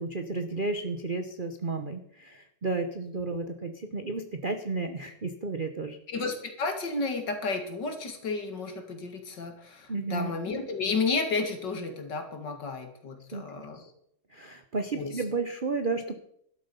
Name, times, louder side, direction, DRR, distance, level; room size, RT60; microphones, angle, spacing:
voice 1, 0.0-6.0 9.9-10.3 13.2-13.7 14.3-16.1, right 3 dB, 55° right, 7 dB, 0.5 m, -32 dB
voice 2, 6.1-13.8 14.9-15.2, left 4 dB, 55° left, 6 dB, 2.5 m, -32 dB
12.5 x 12.0 x 5.4 m, 0.69 s
omnidirectional pair, 2.4 m